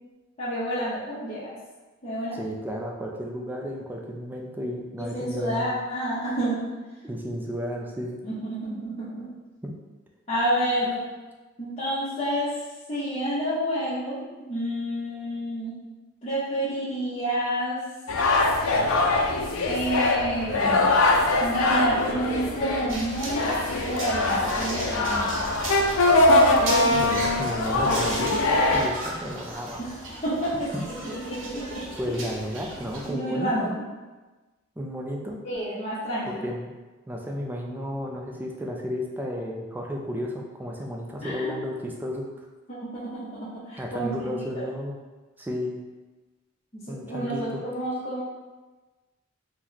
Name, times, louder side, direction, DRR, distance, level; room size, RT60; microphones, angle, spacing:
voice 1, 0.4-1.5 2.0-2.4 5.1-6.7 8.2-9.3 10.3-11.0 11.6-12.5 12.9-14.2 14.5-15.8 16.2-17.8 19.7-20.9 21.4-25.4 26.3-27.0 29.8-30.0 30.2-30.7 31.0-31.8 33.1-33.8 35.4-36.4 41.2-41.5 42.7-44.4 46.7-48.2, equal, 30° left, -12 dB, 0.7 m, -29 dB
voice 2, 2.3-5.7 7.0-8.2 9.6-9.7 26.9-28.4 28.7-29.8 30.7-31.2 32.0-33.8 34.8-35.4 36.3-36.7 37.1-42.5 43.8-45.0 45.4-45.8 46.9-47.6, equal, 10° right, 0 dB, 0.3 m, -33 dB
sound 1, 18.1-28.8, left 2 dB, 85° left, 0.4 m, -22 dB
sound 2, 22.9-33.1, right 1 dB, 65° right, 0.8 m, -36 dB
3.0 x 2.1 x 3.8 m, 1.2 s
head